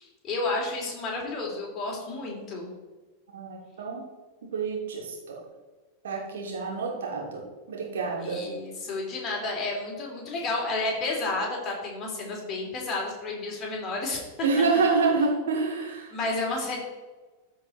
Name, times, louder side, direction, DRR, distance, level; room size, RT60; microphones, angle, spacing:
voice 1, 0.0-2.7 8.2-14.2 15.1-15.4 16.1-16.8, left 2 dB, 30° left, -2 dB, 3.1 m, -31 dB
voice 2, 3.3-4.0 4.4-5.4 6.0-7.4 7.7-8.4 14.4-16.1, right 4 dB, 60° right, -1 dB, 2.6 m, -27 dB
14.0 x 4.7 x 4.2 m, 1.2 s
figure-of-eight pair, 90°, 0 cm